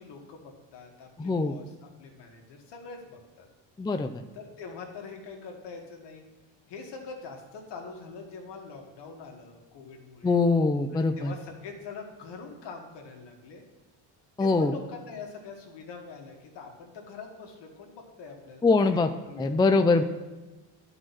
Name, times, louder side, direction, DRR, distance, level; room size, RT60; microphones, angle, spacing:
voice 1, 0.0-3.5 4.3-6.2 6.7-10.4 10.9-13.7 14.4-20.0, left 4 dB, 65° left, 2 dB, 2.1 m, -44 dB
voice 2, 1.2-1.5 3.8-4.1 10.2-11.3 14.4-14.7 18.6-19.1 19.4-20.0, left 3 dB, 10° left, 8 dB, 0.4 m, -23 dB
11.0 x 4.9 x 5.9 m, 1.2 s
cardioid pair, 95°, 44 cm